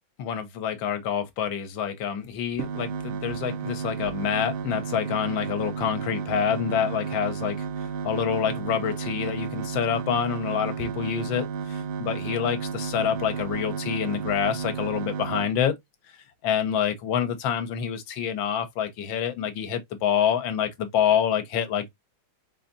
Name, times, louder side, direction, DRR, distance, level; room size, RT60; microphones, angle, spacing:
voice 1, 0.2-7.6 8.0-15.8 16.4-21.9, left 8 dB, 70° left, 1.5 m, -27 dB
sound 1, 2.5-15.5, right 6 dB, 85° right, 1.6 m, -32 dB
4.0 x 3.4 x 2.5 m
omnidirectional pair, 2.2 m